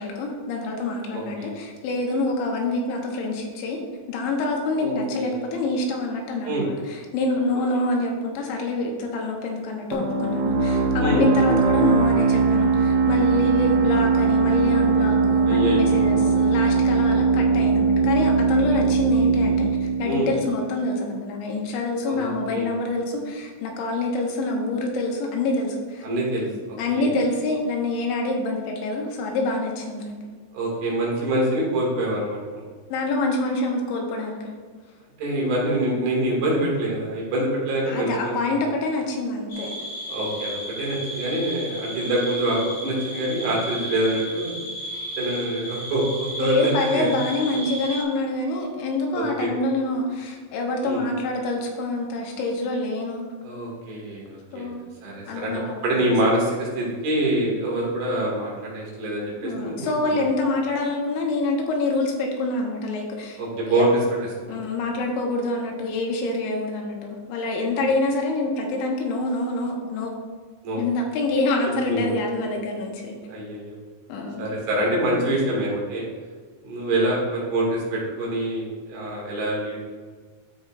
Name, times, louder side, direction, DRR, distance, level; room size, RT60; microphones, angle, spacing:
voice 1, 0.0-3.8 4.1-26.5 26.8-30.2 31.3-31.4 32.9-34.5 37.9-39.7 46.4-53.3 54.5-54.8 55.3-56.0 59.4-63.4 63.7-63.8 64.5-70.1 70.8-73.1 74.1-74.5, left 2 dB, 85° left, 1 dB, 3.3 m, -26 dB
voice 2, 1.1-1.5 4.8-4.9 5.2-5.4 6.4-6.7 11.0-11.2 15.4-16.3 18.7-18.8 20.0-20.3 22.0-22.7 26.0-27.1 30.5-32.6 35.2-38.6 40.1-44.6 45.2-47.1 49.1-49.6 50.8-51.1 53.4-54.7 55.0-60.2 63.4-63.9 64.4-64.6 70.6-70.8 71.7-72.1 73.3-73.8 74.4-76.1 76.6-79.8, right 1 dB, 70° right, -4 dB, 4.0 m, -25 dB
sound 1, 9.9-21.3, right 4 dB, 90° right, 3.5 m, -20 dB
sound 2, 39.5-48.0, equal, 60° left, 1.1 m, -34 dB
12.5 x 5.3 x 2.5 m, 1.5 s
omnidirectional pair, 5.1 m